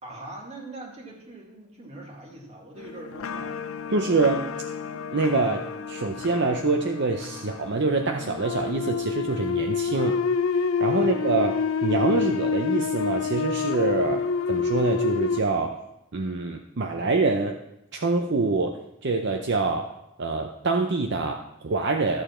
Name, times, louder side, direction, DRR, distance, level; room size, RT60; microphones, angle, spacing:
voice 1, 0.0-3.6 9.9-10.2 10.9-11.2 14.0-14.2, right 2 dB, 30° right, -1 dB, 2.1 m, -42 dB
sound 1, 2.8-15.4, left 5 dB, 85° left, 0.5 m, -28 dB
voice 2, 3.9-4.5 5.1-10.1 10.8-11.5 11.8-14.2 14.5-15.8 16.1-17.6 17.9-19.9 20.2-22.2, right 3 dB, 55° right, 4 dB, 0.7 m, -25 dB
13.0 x 7.3 x 4.3 m, 0.85 s
head